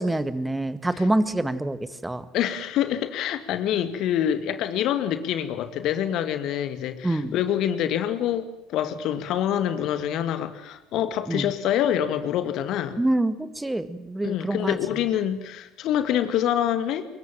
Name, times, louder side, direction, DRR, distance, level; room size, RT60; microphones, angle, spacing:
voice 1, 0.0-2.3 7.0-7.3 11.3-11.5 13.0-14.8, right 1 dB, 10° right, 13 dB, 1.8 m, -26 dB
voice 2, 2.3-13.0 14.2-17.1, left 10 dB, 55° left, 11 dB, 2.1 m, -26 dB
26.5 x 22.5 x 7.5 m, 0.94 s
figure-of-eight pair, 60°, 0 cm